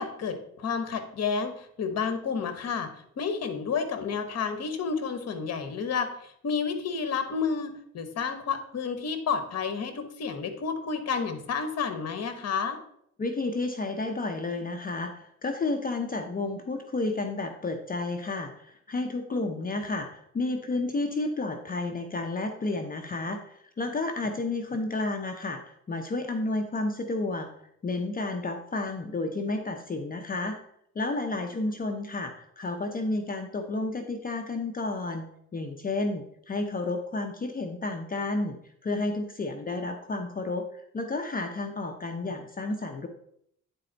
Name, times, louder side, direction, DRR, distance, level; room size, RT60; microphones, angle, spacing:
voice 1, 0.0-12.8 19.3-19.5, left 5 dB, 55° left, 8 dB, 1.2 m, -31 dB
voice 2, 13.2-27.5 27.8-30.6 30.9-35.2 35.5-38.6 38.8-43.1, left 2 dB, 30° left, 5 dB, 0.7 m, -31 dB
9.5 x 4.3 x 3.9 m, 0.71 s
cardioid pair, 90°, 30 cm